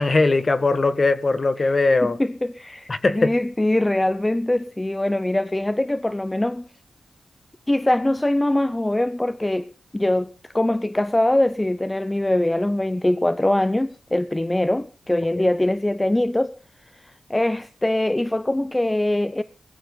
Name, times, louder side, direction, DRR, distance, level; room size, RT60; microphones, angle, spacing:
voice 1, 0.0-2.2 2.9-3.3 15.3-15.4, left 3 dB, 35° left, 1.6 m, -20 dB
voice 2, 2.2-6.6 7.7-16.5 17.3-19.4, left 1 dB, 15° left, 0.7 m, -22 dB
19.5 x 14.5 x 4.0 m
cardioid pair, 80°, 0 cm